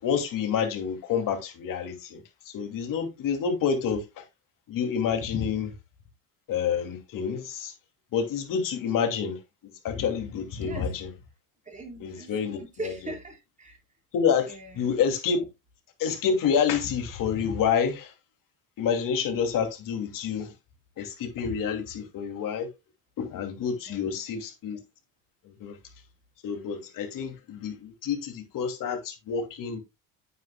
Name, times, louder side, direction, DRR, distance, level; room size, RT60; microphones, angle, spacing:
voice 1, 0.0-4.2 4.7-5.7 6.5-7.7 8.1-11.1 12.0-12.9 14.1-15.4 16.0-18.1 18.8-20.5 21.0-22.7 23.2-24.8 25.4-25.8 26.4-29.8, left 7 dB, 55° left, 2.8 m, -28 dB
voice 2, 10.6-10.9 11.6-13.8 14.5-15.0 23.9-24.2, right 2 dB, 20° right, 4.6 m, -40 dB
9.5 x 9.3 x 2.3 m
cardioid pair, 120°, 39 cm